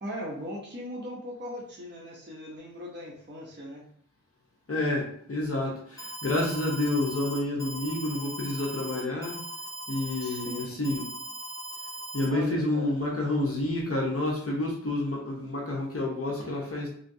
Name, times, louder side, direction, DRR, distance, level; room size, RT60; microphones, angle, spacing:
voice 1, 0.0-3.8 10.2-10.8 12.3-12.9, equal, 35° right, -4 dB, 0.8 m, -39 dB
voice 2, 4.7-9.4 9.9-11.1 12.1-16.9, left 2 dB, 45° left, -3 dB, 0.8 m, -29 dB
Alarm, 6.0-12.3, right 1 dB, 10° left, 0.6 m, -39 dB
3.4 x 2.7 x 2.6 m, 0.64 s
wide cardioid pair, 65°, 32 cm